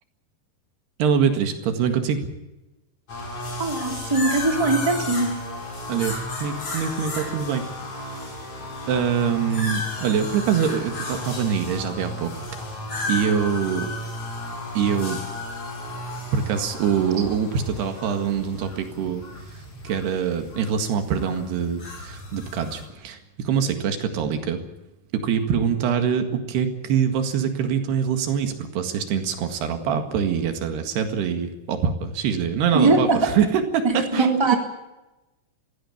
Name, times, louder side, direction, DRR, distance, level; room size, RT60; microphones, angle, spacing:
voice 1, 1.0-2.3 5.9-7.7 8.9-12.5 13.1-13.9 14.8-15.2 16.3-19.2 19.5-24.6 25.1-34.6, right 7 dB, 80° right, 7 dB, 3.9 m, -24 dB
sound 1, 3.1-22.9, left 1 dB, 35° left, 6.0 m, -33 dB
voice 2, 3.6-5.3 32.7-33.2 34.1-34.6, right 2 dB, 5° right, 3 dB, 2.7 m, -21 dB
21.5 x 16.5 x 8.6 m, 1.0 s
omnidirectional pair, 4.6 m